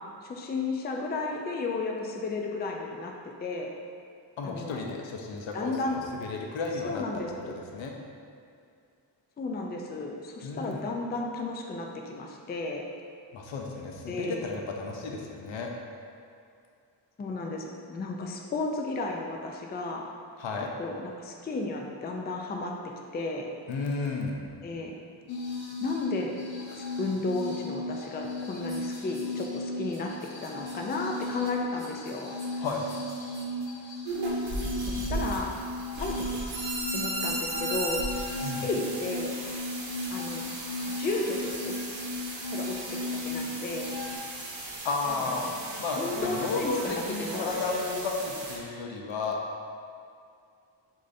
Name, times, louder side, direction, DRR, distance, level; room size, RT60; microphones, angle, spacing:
voice 1, 0.2-3.1 3.4-3.7 4.4-4.9 5.5-6.0 6.8-7.6 9.4-12.8 14.1-14.6 17.2-20.1 20.8-22.7 23.1-23.5 24.6-25.0 25.8-26.3 26.7-32.3 34.8-35.5 36.0-36.4 36.9-38.0 38.4-39.4 40.1-40.5 41.0-41.7 42.5-43.9 45.2-45.5 46.0-47.6, left 3 dB, 25° left, 1 dB, 0.3 m, -33 dB
voice 2, 4.4-7.0 7.7-7.9 10.4-10.8 13.3-15.7 20.4-20.7 23.7-24.4 32.6-32.8 38.4-38.6 44.8-45.5 45.8-49.4, left 3 dB, 85° left, 1 dB, 0.7 m, -33 dB
sound 1, 25.3-44.2, left 2 dB, 60° left, 1.0 m, -36 dB
sound 2, 28.6-29.6 29.9-33.7 34.6-35.6 36.2-38.7 39.2-39.3 39.4-40.7 41.2-43.2 43.7-45.0 45.3-45.5 45.8-46.2, equal, 5° left, 1.1 m, -52 dB
sound 3, 34.0-48.6, right 2 dB, 85° right, 0.9 m, -36 dB
6.4 x 2.7 x 2.6 m, 2.4 s
wide cardioid pair, 115°, 44 cm